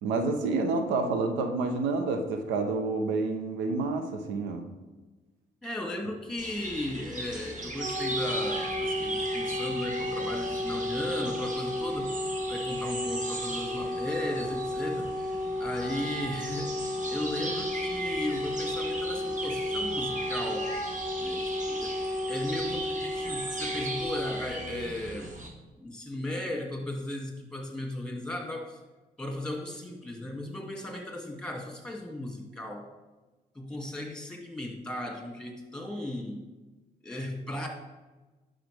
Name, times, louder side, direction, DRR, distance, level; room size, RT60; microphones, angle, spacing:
voice 1, 0.0-4.7, right 3 dB, 90° right, 6 dB, 0.8 m, -29 dB
voice 2, 5.6-20.7 21.2-25.3 25.8-28.8 29.2-32.9 33.5-36.5 37.0-37.7, left 1 dB, 5° left, 1 dB, 2.2 m, -36 dB
sound 1, 6.4-25.5, right 2 dB, 40° right, 1.8 m, -38 dB
Wind instrument woodwind instrument, 7.5-25.0, left 1 dB, 70° right, 3.0 m, -33 dB
9.7 x 6.4 x 3.4 m, 1.2 s
supercardioid pair, 55°, 19 cm